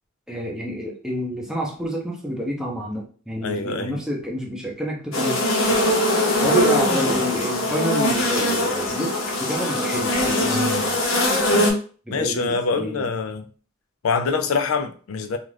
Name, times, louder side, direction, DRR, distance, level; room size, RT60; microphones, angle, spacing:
voice 1, 0.3-5.4 6.4-10.8 12.1-13.1, equal, 5° right, 0.6 m, -28 dB
voice 2, 3.4-4.0 10.5-10.9 12.1-13.5 14.0-15.4, left 4 dB, 80° left, 0.4 m, -25 dB
sound 1, 5.1-11.7, left 1 dB, 65° left, 0.8 m, -21 dB
2.5 x 2.4 x 3.2 m
head